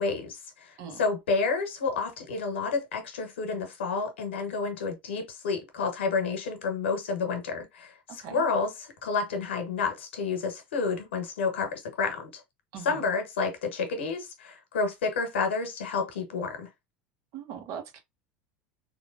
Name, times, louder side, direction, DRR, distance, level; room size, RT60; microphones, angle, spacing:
voice 1, 0.0-8.7 9.0-12.4 12.8-16.7, left 4 dB, 80° left, 1.2 m, -30 dB
voice 2, 8.1-8.4 12.7-13.0 17.3-18.0, right 8 dB, 55° right, 1.3 m, -40 dB
3.6 x 2.9 x 2.6 m
hypercardioid pair, 80°, 6 cm